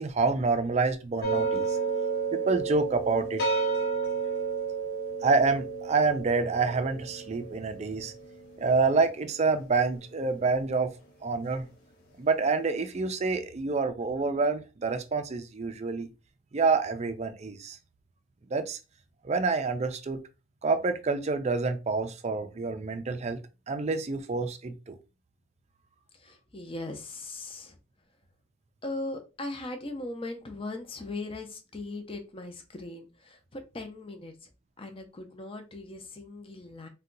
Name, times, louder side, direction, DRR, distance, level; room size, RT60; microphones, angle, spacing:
voice 1, 0.0-1.8 2.3-3.4 5.2-8.1 8.6-10.9 11.2-11.7 12.2-16.1 16.5-17.8 18.5-18.8 19.2-20.2 20.6-23.4 23.7-25.0, right 4 dB, 35° right, 0.4 m, -27 dB
sound 1, 1.2-10.4, right 4 dB, 50° left, 0.9 m, -32 dB
voice 2, 26.1-27.8 28.8-34.5 34.8-36.9, left 2 dB, 25° left, 0.6 m, -39 dB
2.7 x 2.2 x 3.8 m
head